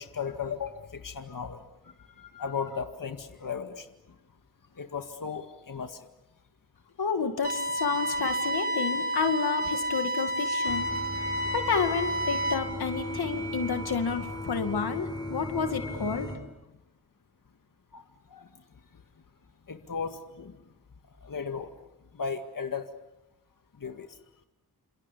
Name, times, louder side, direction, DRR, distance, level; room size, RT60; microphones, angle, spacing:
voice 1, 0.0-3.9 4.8-6.1 10.6-10.7 17.9-18.6 19.7-20.6 21.2-21.7 22.1-22.9 23.7-24.2, left 6 dB, 60° left, 6 dB, 2.0 m, -36 dB
voice 2, 7.0-10.9 11.5-16.3, left 5 dB, 85° left, 6 dB, 2.3 m, -30 dB
sound 1, 7.4-12.5, right 1 dB, 25° right, 5.7 m, -30 dB
sound 2, 10.7-16.4, left 1 dB, 10° left, 6.1 m, -37 dB
28.5 x 27.5 x 7.0 m, 0.93 s
wide cardioid pair, 80°, 37 cm